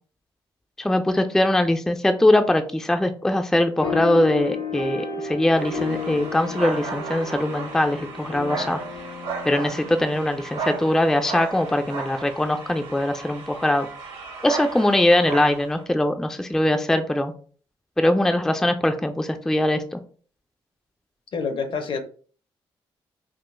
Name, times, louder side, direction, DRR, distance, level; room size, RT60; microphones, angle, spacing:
voice 1, 0.8-8.8 9.5-13.9 14.4-17.3 18.0-20.0, left 1 dB, 5° left, 7 dB, 0.3 m, -21 dB
sound 1, 3.8-10.7, left 5 dB, 80° left, 1.0 m, -33 dB
sound 2, 5.6-15.8, right 4 dB, 75° right, 1.3 m, -35 dB
voice 2, 21.3-22.0, left 5 dB, 55° left, 8 dB, 0.6 m, -27 dB
3.6 x 2.5 x 2.5 m, 0.44 s
supercardioid pair, 55°, 10 cm